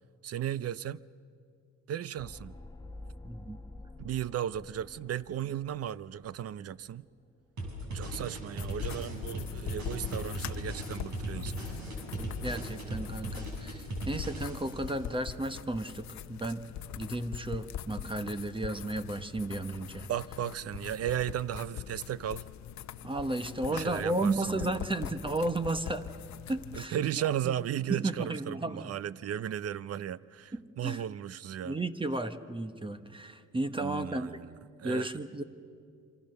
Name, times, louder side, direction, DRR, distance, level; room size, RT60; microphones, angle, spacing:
voice 1, 0.2-1.0 1.9-2.6 4.0-7.0 7.9-11.6 20.1-22.4 23.7-24.8 26.7-31.8 33.7-34.5 34.8-35.1, right 10 dB, 55° right, 0.6 m, -35 dB
sound 1, 2.2-7.0 7.3-7.5 8.9-13.5, left 2 dB, 10° left, 1.2 m, -49 dB
voice 2, 3.2-3.6 12.1-16.6 17.0-20.1 23.0-26.1 26.5-27.5 27.9-28.9 30.5-31.0 31.6-34.3 34.8-35.4, right 2 dB, 15° right, 1.1 m, -34 dB
sound 2, 7.6-14.9, right 1 dB, 70° right, 6.4 m, -38 dB
sound 3, 8.6-26.9, left 10 dB, 65° left, 0.8 m, -43 dB
27.5 x 24.5 x 6.8 m
cardioid pair, 90°, 30 cm